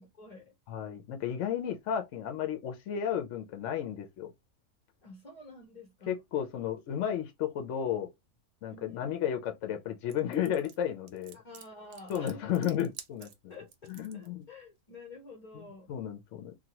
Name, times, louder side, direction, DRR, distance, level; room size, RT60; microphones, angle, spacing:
voice 1, 0.0-0.5 5.0-6.2 8.7-9.1 11.3-12.5 13.5-15.9, left 2 dB, 40° left, 0.6 m, -49 dB
voice 2, 0.7-4.3 6.1-8.1 8.6-11.4 12.1-13.5 13.9-14.4 15.9-16.6, left 9 dB, 65° left, 0.9 m, -33 dB
sound 1, 10.1-14.3, right 9 dB, 75° right, 1.0 m, -50 dB
2.8 x 2.3 x 2.8 m
omnidirectional pair, 1.5 m